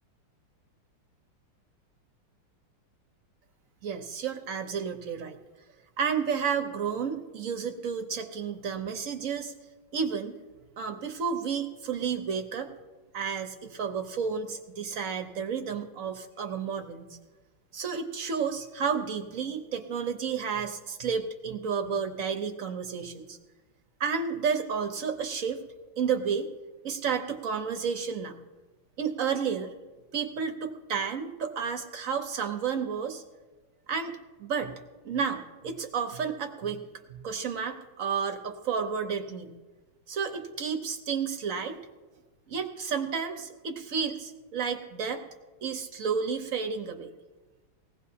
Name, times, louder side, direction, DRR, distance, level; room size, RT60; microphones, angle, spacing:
voice 1, 3.8-5.4 6.0-9.5 9.9-10.4 10.8-12.7 13.1-17.2 17.7-23.4 24.0-25.6 26.0-26.5 26.8-28.4 29.0-29.7 30.1-33.2 33.9-34.7 35.0-36.8 37.2-39.6 40.1-41.8 42.5-45.2 45.6-47.1, right 6 dB, 65° right, 6 dB, 0.8 m, -31 dB
19.5 x 16.0 x 2.8 m, 1.2 s
omnidirectional pair, 2.4 m